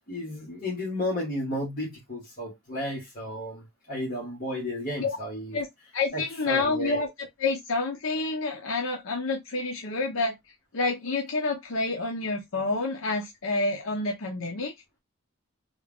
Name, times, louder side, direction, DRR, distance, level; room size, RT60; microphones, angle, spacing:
voice 1, 0.1-5.6 6.1-7.1, left 1 dB, 40° left, 1.5 m, -33 dB
voice 2, 5.9-7.1 7.4-10.3 10.7-14.7, left 3 dB, 70° left, 0.7 m, -28 dB
3.6 x 2.3 x 3.4 m
head